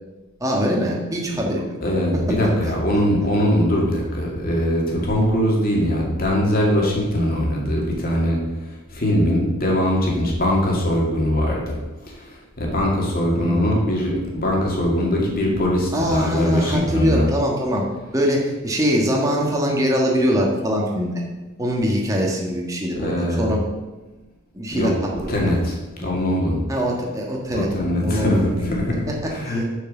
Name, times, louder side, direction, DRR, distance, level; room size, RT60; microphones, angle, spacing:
voice 1, 0.4-1.6 2.1-2.4 2.6-2.7 13.3-13.6 15.9-17.8 18.1-21.2 21.6-23.6 24.5-24.9 25.5-25.6 26.0-26.1 26.7-27.7 28.0-28.8 29.2-29.6, equal, 15° right, -2 dB, 1.4 m, -22 dB
voice 2, 1.8-8.4 8.9-11.8 12.1-17.3 22.9-23.5 24.7-24.9 25.3-26.6 27.5-29.6, equal, 40° left, -2 dB, 2.2 m, -21 dB
6.6 x 6.5 x 6.5 m, 1.1 s
head